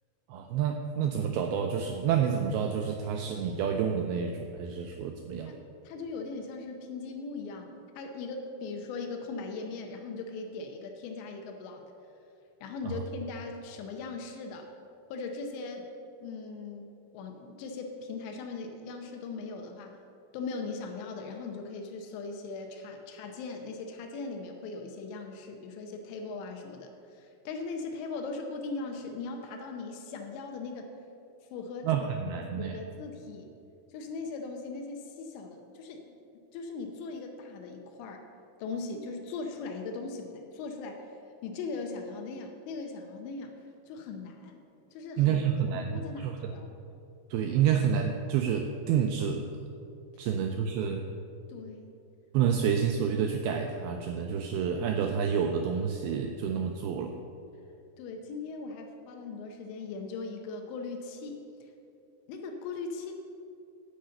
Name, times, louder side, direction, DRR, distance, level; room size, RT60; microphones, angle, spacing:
voice 1, 0.3-5.5 12.9-13.0 31.8-32.8 45.2-46.5 47.3-49.5 50.2-51.0 52.3-57.2, right 7 dB, 85° right, 4 dB, 2.2 m, -29 dB
voice 2, 5.8-11.8 12.6-14.7 15.1-15.9 16.2-20.0 20.3-30.9 31.5-33.5 33.9-36.1 36.5-38.3 38.6-41.1 41.4-43.6 43.9-44.6 44.9-45.4 45.7-46.8 51.5-51.8 58.0-61.7 62.3-63.1, left 4 dB, 90° left, 3 dB, 3.1 m, -39 dB
10.5 x 5.5 x 7.6 m, 2.6 s
omnidirectional pair, 4.9 m